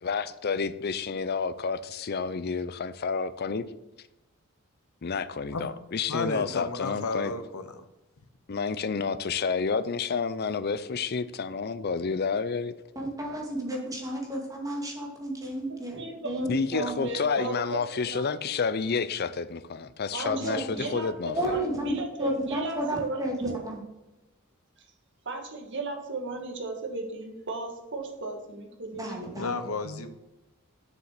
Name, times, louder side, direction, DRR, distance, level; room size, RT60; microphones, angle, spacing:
voice 1, 0.0-3.7 5.0-7.3 8.5-12.7 16.5-21.6, left 5 dB, 50° left, 15 dB, 0.5 m, -30 dB
voice 2, 6.1-7.8 29.3-30.1, left 3 dB, 90° left, 10 dB, 1.0 m, -32 dB
voice 3, 13.0-17.0 20.2-20.6 21.3-23.8 28.9-29.6, right 1 dB, 15° right, 1 dB, 2.1 m, -32 dB
voice 4, 15.8-17.8 18.1-18.3 20.1-23.6 25.2-29.3, right 3 dB, 60° right, 3 dB, 1.7 m, -36 dB
7.1 x 7.1 x 6.6 m, 1.0 s
head